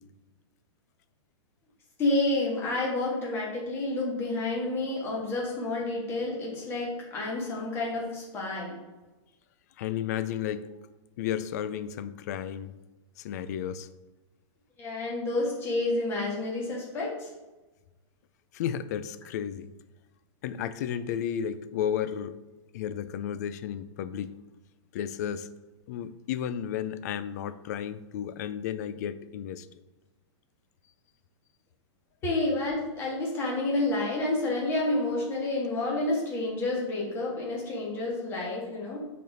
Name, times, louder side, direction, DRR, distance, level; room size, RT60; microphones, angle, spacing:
voice 1, 2.0-8.8 14.8-17.3 32.2-39.0, left 2 dB, 15° left, -4 dB, 1.9 m, -29 dB
voice 2, 9.8-10.7 11.2-12.8 13.2-13.9 18.5-19.7 20.4-22.4 22.7-24.3 24.9-25.5 25.9-29.7, left 9 dB, 35° left, 13 dB, 0.4 m, -33 dB
6.6 x 4.3 x 5.1 m, 1.1 s
supercardioid pair, 170°, 15 cm